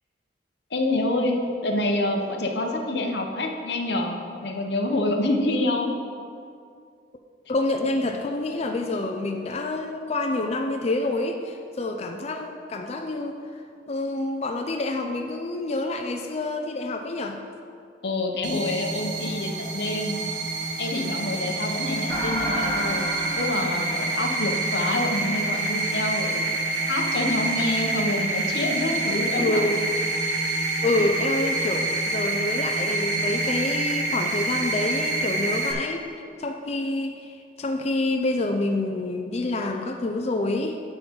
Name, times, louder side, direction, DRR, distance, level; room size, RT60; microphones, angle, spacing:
voice 1, 0.7-4.2 4.4-5.9 18.0-20.2 20.8-23.1 23.4-26.5 26.9-29.6, left 2 dB, 60° left, 2 dB, 0.9 m, -27 dB
voice 2, 7.5-13.4 13.9-17.4 29.4-29.8 30.8-36.0 36.4-40.8, left 2 dB, 35° left, 4 dB, 0.4 m, -27 dB
sound 1, 18.4-35.7, right 2 dB, 75° right, 1.4 m, -27 dB
sound 2, 22.1-24.7, equal, 15° left, 1.3 m, -31 dB
9.9 x 3.8 x 7.3 m, 2.3 s
head